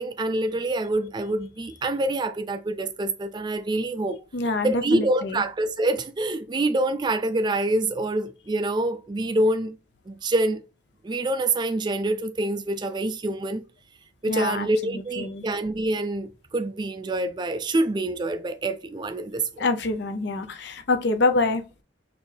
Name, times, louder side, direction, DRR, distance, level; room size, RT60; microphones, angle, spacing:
voice 1, 0.0-4.2 4.6-9.8 10.1-10.6 11.0-13.6 14.2-19.6, right 2 dB, 20° right, 0.3 m, -26 dB
voice 2, 4.3-5.4 14.3-15.4 19.6-21.6, left 3 dB, 55° left, 0.5 m, -26 dB
4.2 x 2.7 x 3.3 m
head